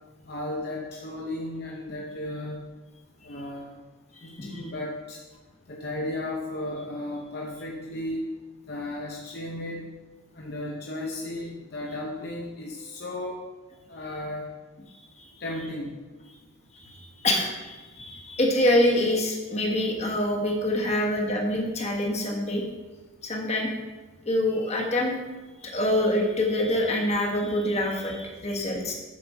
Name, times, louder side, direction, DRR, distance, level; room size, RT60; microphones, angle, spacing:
voice 1, 0.3-2.6 3.2-3.8 4.2-5.2 5.7-8.3 8.7-9.9 10.3-13.5 13.9-14.5 15.4-16.0, left 1 dB, 50° left, -2 dB, 1.0 m, -34 dB
voice 2, 4.2-4.6 16.8-16.9 17.2-22.6 23.2-23.7 24.2-25.1 25.6-28.9, left 1 dB, 30° left, 0 dB, 1.5 m, -25 dB
8.4 x 5.0 x 6.3 m, 1.2 s
head